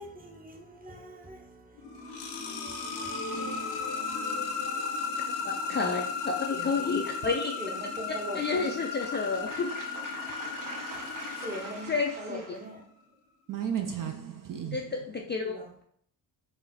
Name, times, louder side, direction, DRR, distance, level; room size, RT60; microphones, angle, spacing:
voice 1, 0.0-3.9 4.3-4.5 5.7-6.0 6.5-7.0 7.6-8.8 11.3-13.2 15.4-15.8, equal, 20° right, 0.8 m, -43 dB
sound 1, 1.7-12.5, left 5 dB, 60° left, 0.7 m, -35 dB
voice 2, 5.4-7.5 8.4-9.7 11.9-12.4 14.6-15.5, left 4 dB, 25° left, 0.3 m, -30 dB
voice 3, 9.0-11.7 13.5-14.9, right 7 dB, 45° right, 0.5 m, -37 dB
4.0 x 2.0 x 2.7 m
supercardioid pair, 55°, 49 cm